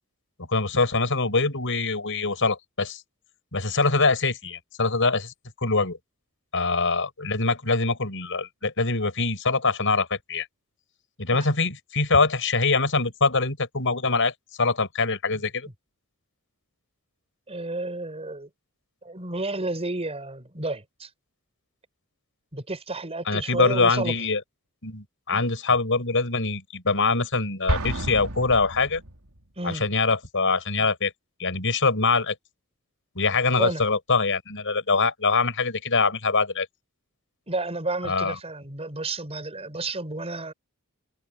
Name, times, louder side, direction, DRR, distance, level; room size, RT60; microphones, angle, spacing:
voice 1, 0.4-3.0 3.5-5.3 5.6-6.0 6.5-10.5 11.2-14.3 14.6-15.7 23.3-24.4 24.8-29.0 29.6-31.1 31.4-32.4 33.2-36.7 38.0-38.4, left 3 dB, 60° left, 6.8 m, -24 dB
voice 2, 17.5-18.5 19.0-21.1 22.5-24.1 25.3-25.4 29.6-29.8 33.6-33.8 37.5-40.5, right 2 dB, 30° right, 5.7 m, -31 dB
Explosion, 27.7-29.4, right 1 dB, 85° right, 3.0 m, -30 dB
head